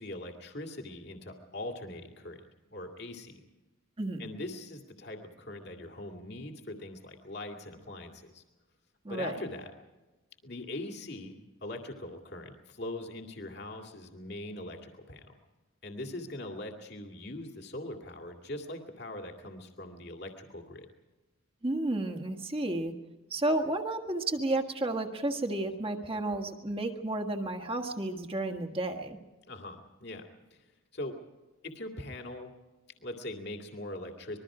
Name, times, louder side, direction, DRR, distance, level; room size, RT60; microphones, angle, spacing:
voice 1, 0.0-2.4 2.7-3.4 4.2-8.4 9.1-9.7 10.4-15.4 15.8-20.9 29.4-30.7 30.9-31.2 31.6-32.5 33.0-34.4, left 1 dB, 55° left, 3 dB, 2.3 m, -41 dB
voice 2, 4.0-4.3 9.0-9.3 21.6-22.9 23.3-29.2, right 2 dB, 25° right, 2 dB, 1.6 m, -32 dB
26.0 x 21.5 x 4.9 m, 1.1 s
head